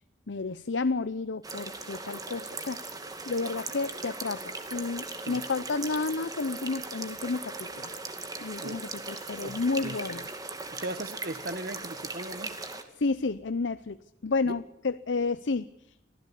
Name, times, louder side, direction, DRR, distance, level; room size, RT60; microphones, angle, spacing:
voice 1, 0.3-7.9 8.4-10.3 13.0-14.0 14.2-16.0, left 3 dB, 80° left, 13 dB, 0.7 m, -31 dB
sound 1, 1.4-12.8, right 3 dB, 20° right, 2.3 m, -39 dB
voice 2, 9.4-10.0 10.7-12.5 14.4-14.6, right 2 dB, 55° right, 15 dB, 1.2 m, -38 dB
25.0 x 15.5 x 8.5 m, 0.81 s
head